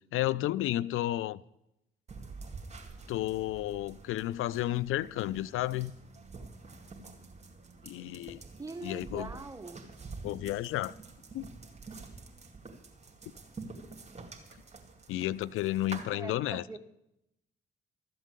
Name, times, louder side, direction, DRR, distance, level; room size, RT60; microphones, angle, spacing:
voice 1, 0.1-1.4 3.1-5.9 7.8-8.4 8.8-9.3 10.2-10.9 11.3-11.4 15.1-16.6, left 15 dB, 75° left, 0.4 m, -32 dB
sound 1, 2.1-16.0, right 3 dB, 30° right, 2.6 m, -48 dB
voice 2, 8.6-9.8 16.1-16.8, right 3 dB, 15° right, 1.2 m, -42 dB
13.5 x 7.7 x 8.2 m
supercardioid pair, 65°, 21 cm